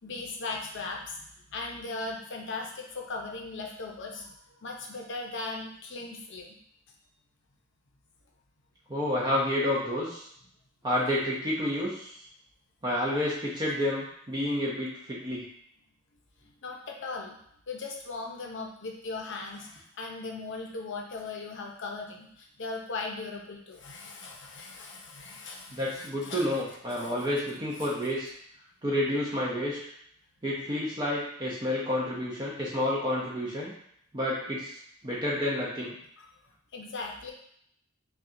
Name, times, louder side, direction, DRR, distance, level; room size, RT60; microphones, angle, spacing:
voice 1, 0.0-6.6 16.4-17.4 17.7-26.5 27.0-27.1 27.8-27.9 36.2-36.3 36.7-37.3, left 3 dB, 60° left, 1 dB, 0.7 m, -38 dB
voice 2, 8.9-10.3 10.8-12.1 12.8-15.4 25.7-28.3 28.8-29.8 30.4-33.7 34.1-34.8 35.0-36.0, left 1 dB, 20° right, -5 dB, 0.6 m, -29 dB
5.6 x 2.3 x 2.6 m, 0.69 s
head